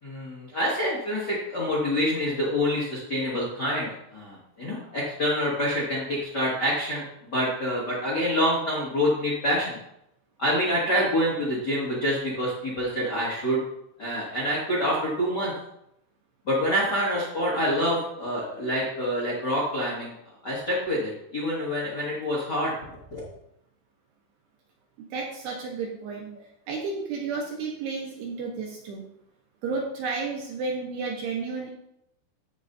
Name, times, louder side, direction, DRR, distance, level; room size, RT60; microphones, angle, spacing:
voice 1, 0.0-9.8 10.4-13.6 14.0-15.5 16.4-20.1 20.4-22.7 23.1-23.2, equal, 65° left, -7 dB, 1.0 m, -26 dB
voice 2, 25.0-26.3 26.7-29.1 29.6-31.7, right 4 dB, 75° right, 0 dB, 2.6 m, -32 dB
16.0 x 5.3 x 2.7 m, 0.78 s
omnidirectional pair, 5.7 m